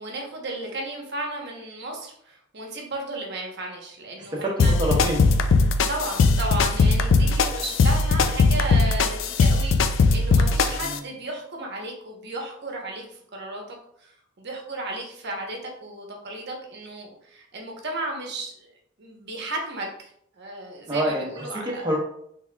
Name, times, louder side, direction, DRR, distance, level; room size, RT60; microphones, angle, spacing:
voice 1, 0.0-4.7 5.9-21.9, right 1 dB, 60° right, 0 dB, 0.9 m, -34 dB
voice 2, 4.4-5.3 10.7-11.1 20.9-22.0, right 1 dB, 20° right, -2 dB, 0.9 m, -27 dB
sound 1, 4.6-11.0, left 3 dB, 70° left, 0.3 m, -20 dB
4.1 x 3.4 x 2.2 m, 0.70 s
head